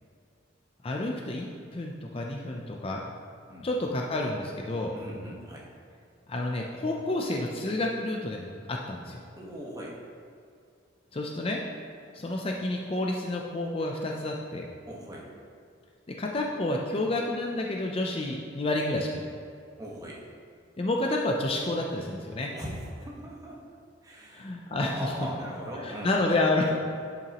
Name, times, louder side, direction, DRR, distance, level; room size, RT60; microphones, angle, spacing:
voice 1, 0.8-1.5 1.7-3.0 3.6-4.9 6.3-9.2 11.1-11.6 12.1-14.6 16.2-19.3 20.8-22.5 24.3-25.1 25.8-26.8, left 2 dB, 30° left, 0 dB, 0.5 m, -29 dB
voice 2, 4.9-5.7 9.4-10.0 14.9-15.3 19.8-20.2 22.5-23.7 24.0-26.2 26.7-26.8, equal, 20° right, -3 dB, 1.3 m, -39 dB
10.5 x 5.9 x 3.0 m, 2.3 s
head